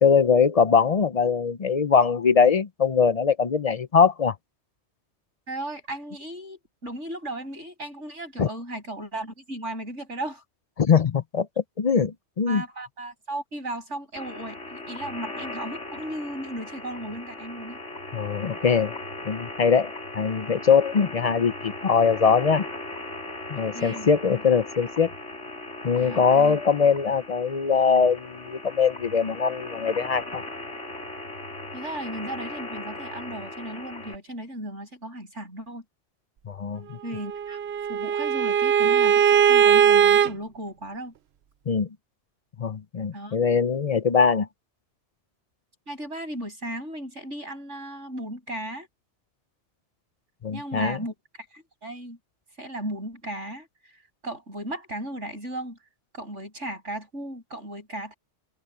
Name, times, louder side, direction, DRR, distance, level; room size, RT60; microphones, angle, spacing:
voice 1, 0.0-4.3 8.4-8.5 10.8-11.5 11.8-12.6 18.1-19.0 19.2-22.6 23.5-25.1 25.8-30.4 36.5-37.0 41.7-41.9 42.6-44.5 50.4-51.0, left 6 dB, 45° left, 0.5 m, -22 dB
voice 2, 5.5-10.4 12.5-17.8 23.5-24.1 26.0-26.6 31.7-35.8 37.0-37.6 37.9-41.1 43.1-43.4 45.9-48.9 50.5-51.1 51.5-52.2 52.6-53.9 54.2-55.8 56.1-58.1, right 1 dB, 85° right, 8.4 m, -36 dB
sound 1, 14.2-34.2, left 2 dB, 90° left, 4.5 m, -38 dB
Bowed string instrument, 37.2-40.3, right 8 dB, 65° right, 0.9 m, -19 dB
open air
omnidirectional pair, 1.2 m